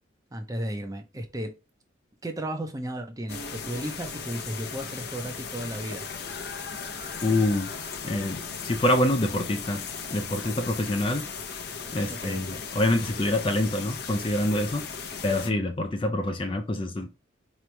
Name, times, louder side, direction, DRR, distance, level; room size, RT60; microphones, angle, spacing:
voice 1, 0.3-1.5 2.2-6.1 12.1-12.4, right 1 dB, 20° right, 0.6 m, -34 dB
sound 1, 3.3-15.5, left 5 dB, 50° left, 0.8 m, -37 dB
voice 2, 7.2-7.7 8.0-9.8 10.1-11.3 11.9-14.9 15.2-17.1, left 1 dB, 25° left, 0.4 m, -26 dB
5.0 x 3.1 x 3.2 m
head